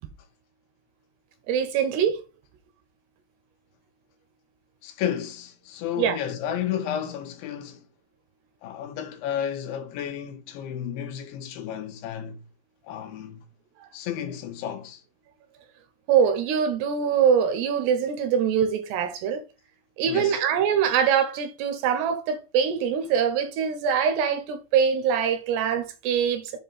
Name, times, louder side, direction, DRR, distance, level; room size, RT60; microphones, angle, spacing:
voice 1, 1.5-2.2 6.0-6.2 13.8-13.9 16.1-19.4 20.0-26.5, right 7 dB, 75° right, 2.8 m, -23 dB
voice 2, 4.8-7.9 8.6-12.4 12.8-13.4 13.9-15.0 20.0-20.4, left 9 dB, 75° left, 3.7 m, -32 dB
7.5 x 4.5 x 5.4 m
omnidirectional pair, 5.4 m